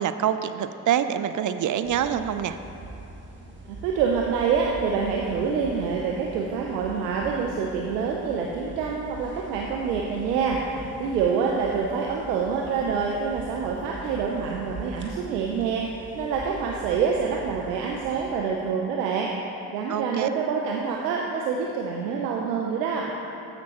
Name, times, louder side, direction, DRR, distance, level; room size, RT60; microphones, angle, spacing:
voice 1, 0.0-2.6 19.9-20.3, right 9 dB, 40° right, 10 dB, 0.5 m, -26 dB
sound 1, 1.8-18.4, right 2 dB, 25° right, 1.6 m, -43 dB
voice 2, 3.7-15.9 16.2-19.3 19.7-23.1, right 6 dB, 85° right, -1 dB, 0.6 m, -26 dB
14.0 x 5.9 x 3.0 m, 2.8 s
hypercardioid pair, 40°, 47 cm